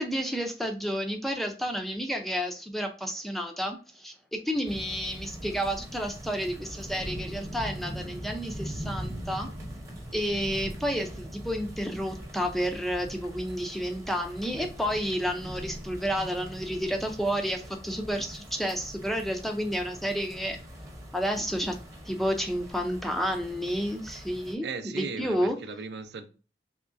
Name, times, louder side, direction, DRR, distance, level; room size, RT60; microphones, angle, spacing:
voice 1, 0.0-9.5 10.1-20.6 21.1-21.8 22.1-25.6, equal, ahead, 0.4 m, -31 dB
sound 1, 4.7-24.5, equal, 15° right, 0.7 m, -41 dB
voice 2, 24.6-26.3, right 4 dB, 75° right, 0.4 m, -37 dB
3.7 x 3.1 x 2.5 m
head